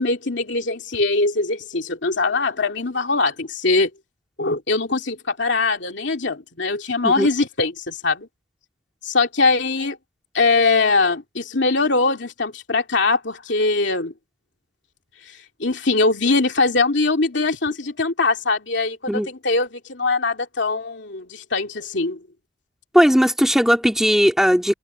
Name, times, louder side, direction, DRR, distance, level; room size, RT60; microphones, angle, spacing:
voice 1, 0.0-3.9 4.4-8.3 9.0-10.0 10.3-14.1 15.6-22.2, left 3 dB, 65° left, 2.7 m, -21 dB
voice 2, 22.9-24.7, equal, ahead, 3.0 m, -17 dB
head